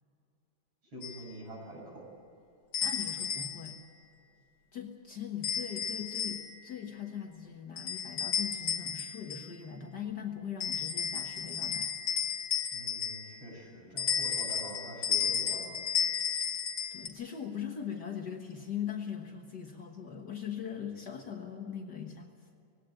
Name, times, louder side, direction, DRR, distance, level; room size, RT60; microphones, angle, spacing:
voice 1, 0.9-2.1 12.7-15.8, right 1 dB, 70° right, -2 dB, 7.9 m, -45 dB
sound 1, 1.0-1.2 2.7-3.8 5.4-6.7 7.8-9.6 10.6-13.5 14.0-17.1, left 8 dB, 90° left, 2.6 m, -33 dB
voice 2, 2.8-3.8 4.7-11.9 16.9-22.3, left 8 dB, 55° left, 3 dB, 1.9 m, -40 dB
20.0 x 17.0 x 9.0 m, 2.6 s
omnidirectional pair, 2.3 m